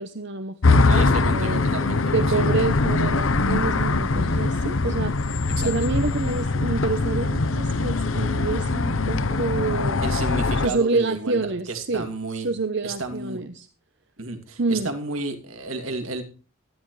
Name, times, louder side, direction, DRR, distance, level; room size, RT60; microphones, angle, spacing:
voice 1, 0.0-1.6 2.1-5.1 5.6-10.0 10.6-12.1 12.3-13.7 14.6-14.9, right 3 dB, 55° right, 9 dB, 0.9 m, -27 dB
sound 1, 0.6-10.7, left 3 dB, 75° left, 0.9 m, -22 dB
voice 2, 0.9-2.4 5.6-5.7 10.0-12.5 12.8-13.4 14.2-16.2, right 2 dB, 80° right, 6 dB, 2.7 m, -32 dB
17.0 x 13.0 x 3.3 m, 0.36 s
head